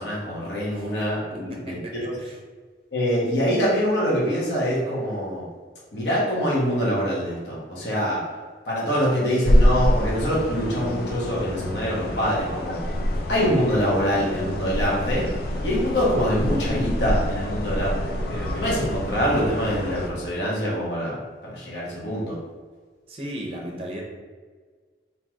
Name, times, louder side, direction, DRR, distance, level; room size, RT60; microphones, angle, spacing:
voice 1, 0.0-1.8 2.0-2.1 2.9-5.5 5.9-8.2 8.7-12.8 13.3-15.3 15.6-21.2 21.4-22.4, equal, 70° left, -6 dB, 1.1 m, -24 dB
voice 2, 1.3-2.4 23.1-24.0, equal, 30° right, 0 dB, 0.6 m, -36 dB
sound 1, 9.4-20.1, equal, 55° left, 0.4 m, -26 dB
3.1 x 2.8 x 3.6 m, 1.5 s
head